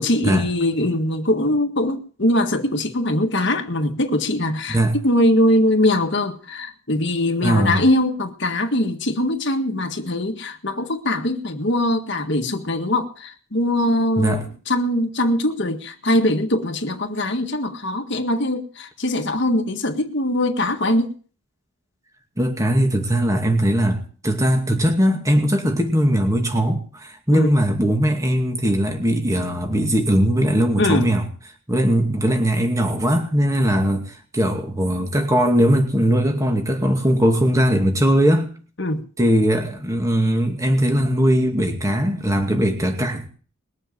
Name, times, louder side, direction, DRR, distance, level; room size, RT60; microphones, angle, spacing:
voice 1, 0.0-21.1 27.3-27.6 30.8-31.1 38.8-39.0, left 1 dB, 55° left, 4 dB, 1.7 m, -22 dB
voice 2, 7.4-7.8 14.2-14.4 22.4-31.3 31.7-38.5 39.2-43.3, equal, 15° right, 4 dB, 2.3 m, -19 dB
20.5 x 7.5 x 9.3 m, 0.41 s
head